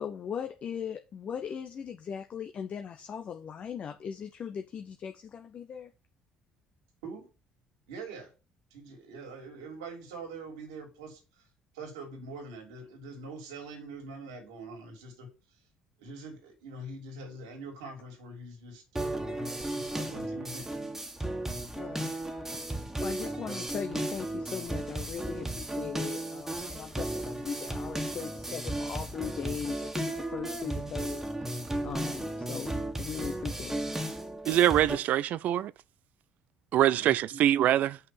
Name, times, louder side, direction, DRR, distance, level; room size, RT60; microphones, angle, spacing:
voice 1, 0.0-5.9 21.8-22.1 23.0-31.6 31.8-33.8, left 7 dB, 50° left, 0.8 m, -39 dB
voice 2, 7.9-8.3 8.7-11.4 11.7-15.6 16.0-20.7 21.8-21.9 31.9-32.0 37.0-37.4, right 3 dB, 85° right, 2.8 m, -44 dB
sound 1, 19.0-35.0, right 1 dB, 10° right, 1.7 m, -35 dB
voice 3, 34.5-35.7 36.7-38.0, right 12 dB, 60° right, 0.4 m, -24 dB
5.8 x 5.4 x 5.9 m
hypercardioid pair, 55°, 3 cm